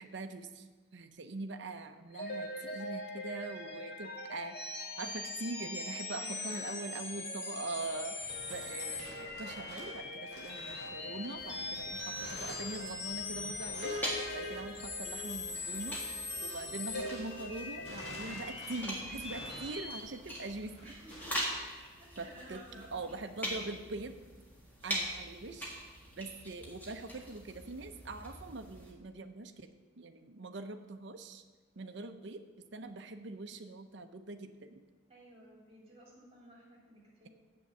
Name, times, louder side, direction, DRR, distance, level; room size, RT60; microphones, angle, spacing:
voice 1, 0.0-4.6 5.0-8.2 8.5-16.0 16.4-21.0 21.7-21.8 22.2-24.1 24.8-25.7 26.2-31.4 31.8-34.8, right 2 dB, 55° right, 7 dB, 0.7 m, -43 dB
sound 1, 2.1-20.0, left 2 dB, 50° left, 1.4 m, -41 dB
voice 2, 6.0-6.9 20.8-21.5 21.8-23.1 35.1-37.3, right 1 dB, 30° right, -3 dB, 2.9 m, -54 dB
sound 2, 7.8-17.4 17.7-21.5, equal, 30° left, 3.0 m, -51 dB
sound 3, 11.3-28.9, equal, 10° left, 1.7 m, -44 dB
7.4 x 6.9 x 8.0 m, 1.3 s
head